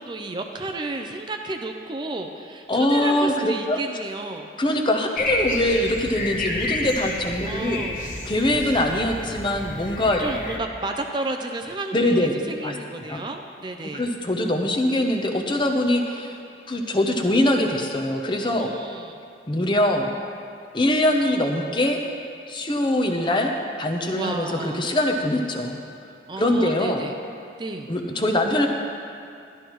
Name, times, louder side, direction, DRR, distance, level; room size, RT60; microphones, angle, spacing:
voice 1, 0.0-4.5 7.4-8.0 10.2-14.0 18.6-19.2 24.1-24.9 26.3-27.2 27.6-27.9, right 2 dB, 25° right, 4 dB, 0.4 m, -32 dB
voice 2, 2.7-3.8 4.6-7.8 8.2-10.2 11.9-12.4 12.6-12.7 13.1-13.2 13.9-16.4 16.7-18.7 19.5-20.1 20.7-22.0 22.5-23.5 23.8-25.8 26.4-27.0 27.9-28.7, left 1 dB, 25° left, 2 dB, 0.7 m, -23 dB
sound 1, 5.2-10.6, left 2 dB, 45° left, 1.0 m, -30 dB
12.5 x 11.5 x 3.1 m, 2.5 s
head